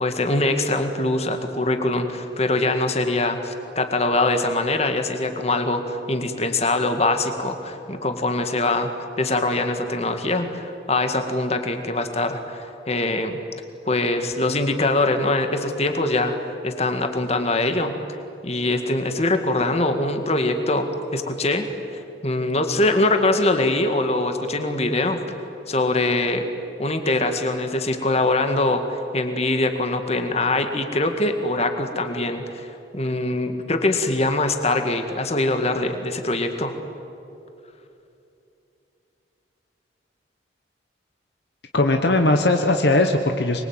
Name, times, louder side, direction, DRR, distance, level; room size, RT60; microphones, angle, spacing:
voice 1, 0.0-8.9 9.2-13.4 13.9-16.4 16.6-17.9 18.4-21.7 21.9-25.2 25.7-26.5 26.8-36.8, left 2 dB, 35° left, 6 dB, 2.0 m, -23 dB
voice 2, 41.7-43.6, left 2 dB, 60° left, 5 dB, 1.3 m, -19 dB
25.0 x 22.5 x 9.0 m, 2.8 s
head